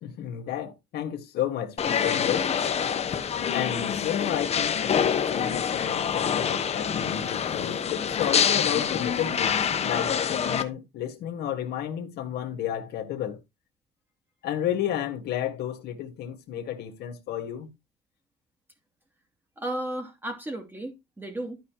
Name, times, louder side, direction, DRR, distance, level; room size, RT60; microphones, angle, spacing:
voice 1, 0.0-2.5 3.5-13.4 14.4-17.7, left 10 dB, 75° left, 1.7 m, -32 dB
sound 1, 1.8-10.6, left 7 dB, 40° left, 1.0 m, -26 dB
voice 2, 19.6-21.6, right 1 dB, 10° right, 2.8 m, -34 dB
12.5 x 5.8 x 3.0 m
cardioid pair, 110°, 17 cm